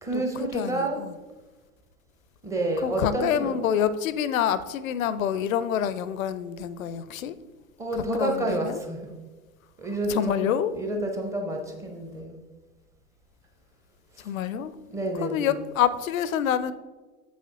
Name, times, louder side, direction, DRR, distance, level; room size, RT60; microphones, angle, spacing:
voice 1, 0.0-1.0 2.4-3.5 7.8-9.0 9.8-12.4 14.2-14.3 14.9-15.5, right 2 dB, 5° right, 2 dB, 0.5 m, -29 dB
voice 2, 0.5-1.1 2.8-7.4 8.2-8.8 10.1-10.7 14.2-14.7 15.2-16.7, left 9 dB, 65° left, 15 dB, 0.5 m, -27 dB
7.6 x 6.2 x 2.9 m, 1.3 s
figure-of-eight pair, 95°, 44 cm